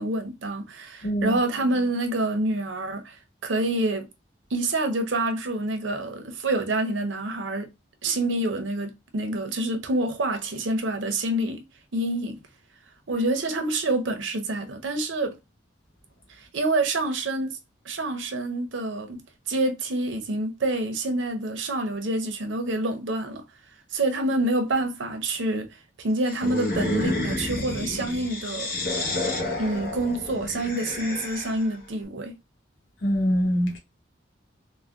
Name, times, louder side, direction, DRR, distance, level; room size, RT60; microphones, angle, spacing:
voice 1, 0.0-4.1 4.5-7.7 8.0-11.6 11.9-12.4 13.1-15.4 16.4-17.6 17.8-19.2 19.5-23.4 23.9-25.7 26.0-28.7 29.6-32.3, right 2 dB, 80° right, 0.6 m, -27 dB
voice 2, 1.0-1.4 33.0-33.8, equal, 75° left, 1.0 m, -24 dB
sound 1, 26.3-31.7, left 2 dB, 50° left, 0.9 m, -30 dB
3.4 x 2.1 x 2.4 m
head